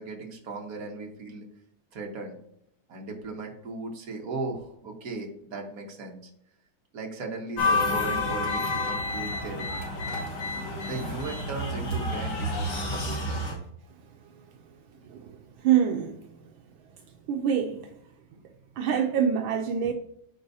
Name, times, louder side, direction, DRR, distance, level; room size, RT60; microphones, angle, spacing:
voice 1, 0.0-1.5 1.9-2.4 2.9-6.3 6.9-9.9 10.8-13.6, right 3 dB, 45° right, 1.6 m, -37 dB
sound 1, 7.6-13.5, left 2 dB, 70° left, 2.8 m, -29 dB
voice 2, 15.6-16.2 17.3-17.9 18.8-19.9, right 8 dB, 80° right, 1.3 m, -25 dB
13.0 x 4.7 x 2.7 m
omnidirectional pair, 2.3 m